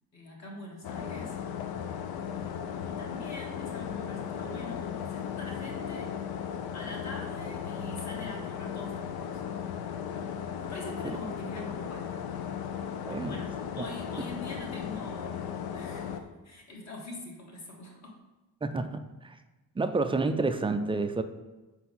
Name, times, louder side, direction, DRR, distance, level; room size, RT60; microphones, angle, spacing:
voice 1, 0.1-1.4 2.4-6.1 6.7-9.4 10.6-12.2 13.1-18.2, left 1 dB, 50° left, -1 dB, 1.7 m, -44 dB
sound 1, 0.8-16.2, left 8 dB, 80° left, 0.6 m, -36 dB
voice 2, 18.6-19.4 19.8-21.2, right 3 dB, 15° right, 8 dB, 0.3 m, -29 dB
4.6 x 4.2 x 5.4 m, 1.1 s
cardioid pair, 110°, 37 cm